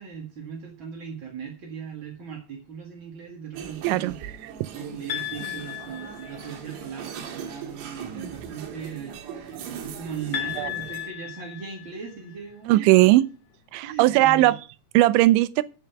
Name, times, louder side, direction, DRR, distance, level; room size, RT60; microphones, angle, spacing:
voice 1, 0.0-4.2 4.7-12.9 13.8-14.5, right 7 dB, 50° right, 1.4 m, -38 dB
sound 1, 3.5-11.1, right 7 dB, 75° right, 3.8 m, -39 dB
voice 2, 3.8-4.1 10.6-10.7 12.7-13.2 13.7-14.6 14.9-15.6, right 17 dB, 90° right, 2.9 m, -18 dB
sound 2, 5.1-6.7 10.3-12.4, left 12 dB, 50° left, 2.4 m, -35 dB
9.2 x 8.0 x 5.9 m
omnidirectional pair, 5.1 m